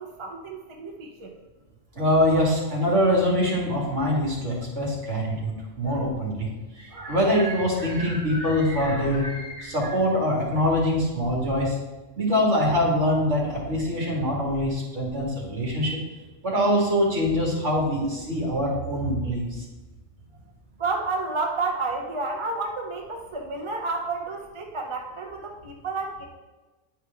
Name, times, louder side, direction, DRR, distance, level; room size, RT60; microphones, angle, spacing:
voice 1, 0.0-1.3 20.8-26.3, right 3 dB, 30° right, 1 dB, 0.7 m, -30 dB
voice 2, 2.0-6.5 6.8-11.8 12.2-16.0 16.4-19.5, equal, 60° right, -3 dB, 2.4 m, -24 dB
10.0 x 4.7 x 3.5 m, 1.2 s
omnidirectional pair, 1.3 m